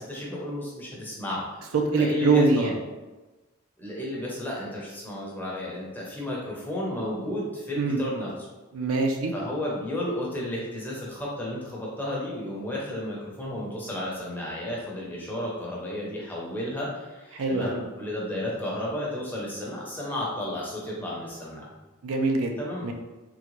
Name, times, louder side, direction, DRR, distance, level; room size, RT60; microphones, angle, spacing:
voice 1, 0.0-2.7 3.8-8.3 9.3-21.6 22.6-22.9, left 1 dB, 10° left, -5 dB, 0.6 m, -33 dB
voice 2, 1.9-2.7 7.8-8.0 8.7-9.3 17.3-17.7 22.0-22.5 22.8-22.9, right 3 dB, 75° right, 3 dB, 0.4 m, -23 dB
3.7 x 2.1 x 3.0 m, 1.2 s
head